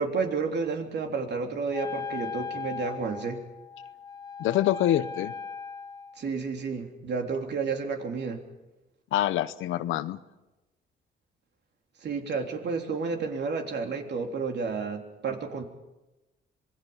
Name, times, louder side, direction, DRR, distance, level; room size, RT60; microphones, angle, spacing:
voice 1, 0.0-3.4 6.2-8.4 12.0-15.6, right 4 dB, 60° right, 3 dB, 3.5 m, -31 dB
Wind instrument woodwind instrument, 1.7-6.3, left 5 dB, 20° left, 1.2 m, -38 dB
voice 2, 4.4-5.3 9.1-10.2, left 13 dB, 90° left, 14 dB, 1.0 m, -25 dB
26.5 x 21.5 x 5.7 m, 1.0 s
cardioid pair, 90°, 20 cm